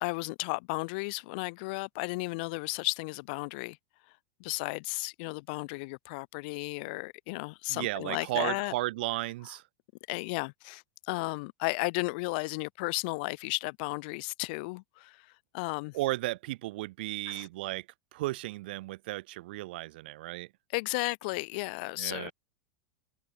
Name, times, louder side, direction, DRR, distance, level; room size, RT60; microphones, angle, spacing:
voice 1, 0.0-3.8 4.4-8.7 10.1-16.0 17.3-17.5 20.7-22.3, left 28 dB, 60° left, 0.7 m, -34 dB
voice 2, 7.7-9.6 15.9-17.9 18.1-20.5 22.0-22.3, right 18 dB, 65° right, 1.2 m, -34 dB
hypercardioid pair, 100°, 6 cm